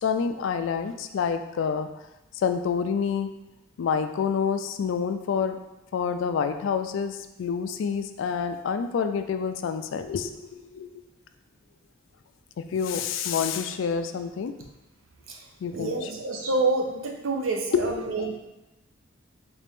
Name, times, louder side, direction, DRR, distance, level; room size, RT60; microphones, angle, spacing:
voice 1, 0.0-1.9 2.4-3.3 3.8-5.6 5.9-10.9 12.6-14.5 15.6-16.0 17.7-18.3, left 6 dB, 70° left, 9 dB, 0.3 m, -28 dB
voice 2, 15.7-18.4, right 3 dB, 85° right, 1 dB, 0.7 m, -28 dB
4.2 x 2.5 x 3.4 m, 0.98 s
head